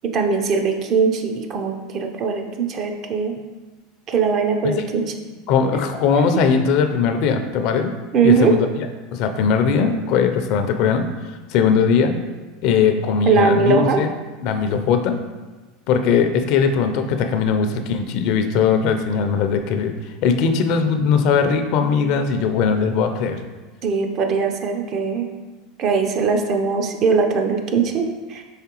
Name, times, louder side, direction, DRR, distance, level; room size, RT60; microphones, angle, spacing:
voice 1, 0.0-3.3 4.1-5.1 6.3-6.4 8.1-8.6 13.2-14.0 23.8-25.3 25.8-28.4, right 5 dB, 45° right, 5 dB, 0.5 m, -20 dB
voice 2, 5.5-7.9 8.2-8.9 9.1-11.1 11.5-12.1 12.6-14.1 14.4-15.2 15.9-19.9 20.2-23.4, left 6 dB, 60° left, 7 dB, 0.4 m, -19 dB
4.8 x 3.2 x 3.0 m, 1.3 s
hypercardioid pair, 100°, 0 cm